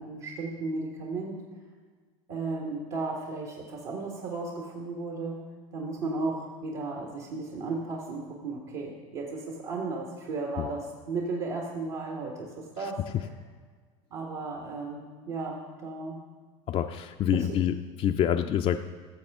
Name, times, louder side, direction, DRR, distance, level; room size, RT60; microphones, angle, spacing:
voice 1, 0.0-1.4 2.3-5.4 5.7-13.0 14.1-16.2 17.3-17.5, right 3 dB, 65° right, -1 dB, 1.5 m, -34 dB
voice 2, 16.7-18.8, left 10 dB, 40° left, 6 dB, 0.4 m, -27 dB
14.5 x 7.1 x 3.6 m, 1.5 s
hypercardioid pair, 85°, 16 cm